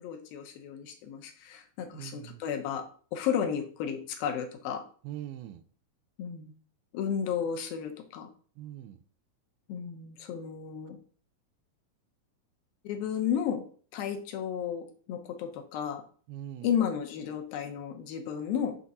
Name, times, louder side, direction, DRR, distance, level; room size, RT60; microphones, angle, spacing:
voice 1, 0.0-2.9 3.1-4.8 6.2-6.5 6.9-8.3 9.7-11.0 12.8-13.7 13.9-16.0 16.6-18.8, left 8 dB, 80° left, 4 dB, 2.7 m, -33 dB
voice 2, 1.8-2.4 5.0-5.6 8.6-9.0 16.3-16.7, right 12 dB, 90° right, 10 dB, 2.5 m, -42 dB
8.4 x 3.8 x 4.1 m, 0.43 s
omnidirectional pair, 4.3 m